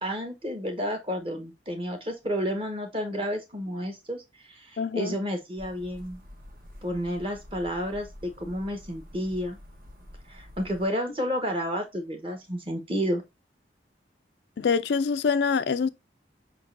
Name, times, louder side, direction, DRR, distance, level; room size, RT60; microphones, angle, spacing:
voice 1, 0.0-4.2 4.5-6.2 6.8-9.6 10.3-13.2, equal, 30° right, 1.2 m, -31 dB
voice 2, 4.8-5.1 14.6-15.9, left 5 dB, 75° left, 0.4 m, -25 dB
sound 1, 5.6-10.9, left 1 dB, 50° right, 1.2 m, -48 dB
5.3 x 3.7 x 2.5 m
head